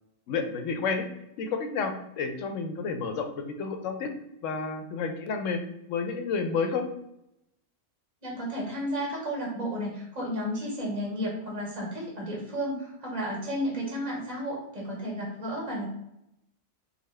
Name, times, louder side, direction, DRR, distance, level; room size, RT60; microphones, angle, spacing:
voice 1, 0.3-1.0 1.4-4.1 4.4-5.6 5.9-6.9, left 5 dB, 85° left, 6 dB, 0.9 m, -30 dB
voice 2, 8.2-15.8, equal, 35° right, -4 dB, 1.4 m, -32 dB
3.6 x 2.2 x 3.2 m, 0.83 s
omnidirectional pair, 1.3 m